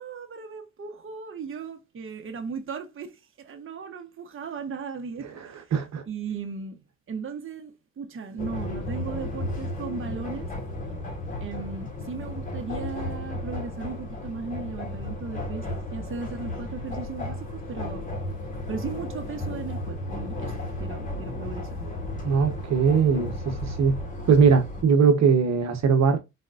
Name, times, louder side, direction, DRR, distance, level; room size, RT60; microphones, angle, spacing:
voice 1, 0.0-5.7 6.1-6.8 7.1-10.5 11.4-18.1 18.7-21.8, right 5 dB, 45° right, 1.2 m, -37 dB
voice 2, 5.7-6.0 22.2-24.0 24.3-26.2, right 5 dB, 60° right, 1.2 m, -20 dB
sound 1, 8.4-24.8, left 1 dB, 25° left, 3.0 m, -34 dB
4.3 x 4.1 x 2.5 m
cardioid pair, 90°, 30 cm